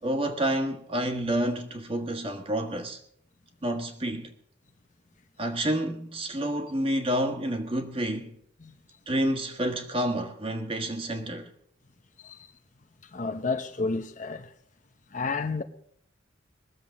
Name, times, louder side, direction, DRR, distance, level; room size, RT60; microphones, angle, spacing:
voice 1, 0.0-3.0 3.6-4.3 5.4-8.4 9.1-11.5, right 1 dB, 30° right, 1.6 m, -29 dB
voice 2, 12.2-12.5 13.0-14.5 15.1-15.6, left 4 dB, 40° left, 0.8 m, -31 dB
21.0 x 7.4 x 6.2 m
head